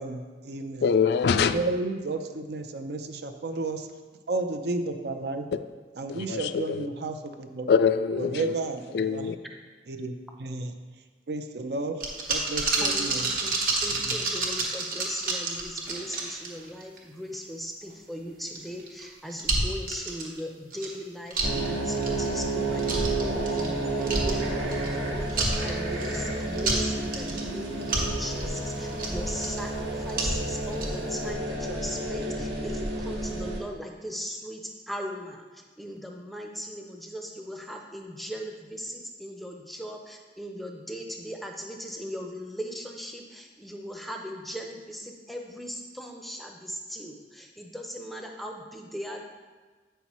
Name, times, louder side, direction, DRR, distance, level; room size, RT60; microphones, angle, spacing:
voice 1, 0.0-0.9 1.5-3.9 4.3-5.5 6.0-7.7 8.2-9.3 9.9-10.7 11.3-13.3 13.9-14.2, right 2 dB, 65° right, 7 dB, 0.6 m, -32 dB
voice 2, 0.8-1.6 6.3-6.9 7.7-8.5 8.9-9.4, left 6 dB, 65° left, 11 dB, 0.3 m, -24 dB
sound 1, 12.0-17.0 17.3-17.4 18.5-19.0 19.3-20.4 20.7-20.9 21.3-21.7 22.0-22.4 22.8-23.7 24.0-25.0 25.3-26.2 26.5-27.4 27.8-29.6 30.1-31.0 31.3-31.4, right 3 dB, 50° right, 1.1 m, -29 dB
voice 3, 12.8-13.5 13.8-49.2, equal, ahead, 2 dB, 0.6 m, -38 dB
sound 2, 21.4-33.6, right 2 dB, 90° right, 1.3 m, -31 dB
8.2 x 5.6 x 3.0 m, 1.3 s
head